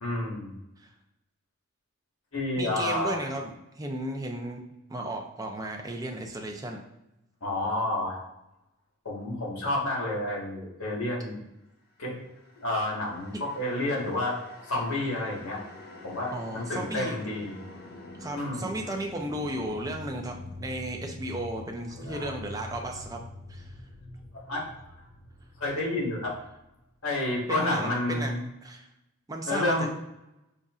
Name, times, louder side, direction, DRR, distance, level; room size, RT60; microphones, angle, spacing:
voice 1, 0.0-0.6 2.3-3.3 7.4-8.2 9.0-11.4 12.0-12.2 12.6-14.4 14.6-15.6 16.0-17.6 18.3-18.8 21.9-22.3 24.5-24.6 25.6-26.3 27.0-28.4 29.5-30.0, left 1 dB, 75° left, -3 dB, 1.4 m, -30 dB
voice 2, 2.6-4.6 4.9-6.8 16.3-17.2 18.2-23.2 23.5-23.7 27.5-28.3 28.6-28.9 29.3-29.9, right 1 dB, 15° right, 1 dB, 0.4 m, -34 dB
sound 1, 12.2-27.4, left 2 dB, 45° left, 0.5 m, -46 dB
5.4 x 2.6 x 2.4 m, 0.92 s
head